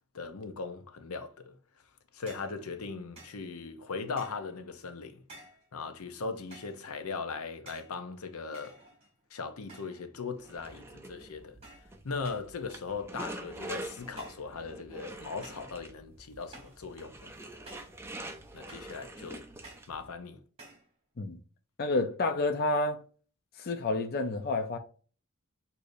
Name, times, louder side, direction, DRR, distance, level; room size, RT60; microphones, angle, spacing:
voice 1, 0.1-5.2 5.7-8.8 9.3-11.6 12.0-17.3 18.5-19.4 19.9-20.4, left 4 dB, 80° left, 0.7 m, -39 dB
sound 1, 2.3-2.6 3.2-3.4 4.2-4.5 5.3-5.7 6.5-6.8 7.7-8.0 8.5-9.2 9.7-10.1 10.4-10.9 11.6-11.9 12.2-12.5 13.2-13.5 14.2-14.5 15.4-15.8 16.5-16.8 17.7-18.0 18.7-19.0 19.6-19.9 20.6-20.9, right 2 dB, 25° right, 1.5 m, -52 dB
sound 2, 10.4-20.1, right 1 dB, 10° right, 0.4 m, -45 dB
voice 2, 21.8-23.0 23.6-24.8, left 2 dB, 45° left, 0.5 m, -29 dB
6.5 x 2.7 x 2.6 m
head